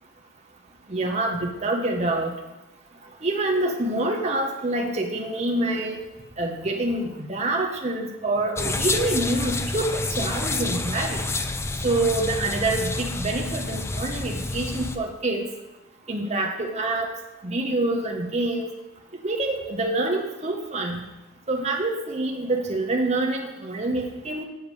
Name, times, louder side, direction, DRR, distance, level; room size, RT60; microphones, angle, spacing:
voice 1, 0.9-2.3 3.2-6.0 6.4-11.2 11.8-15.4 16.1-17.1 17.4-18.7 19.2-21.0 21.5-24.4, right 2 dB, 35° right, 1 dB, 0.9 m, -26 dB
sound 1, 8.6-15.0, left 2 dB, 15° left, 0.4 m, -28 dB
7.2 x 6.7 x 4.9 m, 0.98 s
head